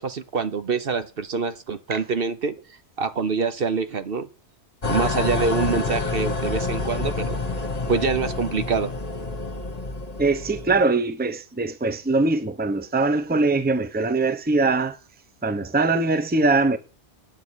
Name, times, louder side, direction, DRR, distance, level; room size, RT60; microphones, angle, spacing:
voice 1, 0.0-2.6 3.0-4.3 4.8-7.4 7.9-8.9, right 5 dB, 55° right, 1.1 m, -25 dB
sound 1, 4.8-10.8, left 3 dB, 35° left, 1.9 m, -28 dB
voice 2, 10.2-15.0 15.4-16.8, right 3 dB, 10° right, 0.8 m, -22 dB
9.7 x 9.6 x 6.3 m
omnidirectional pair, 1.2 m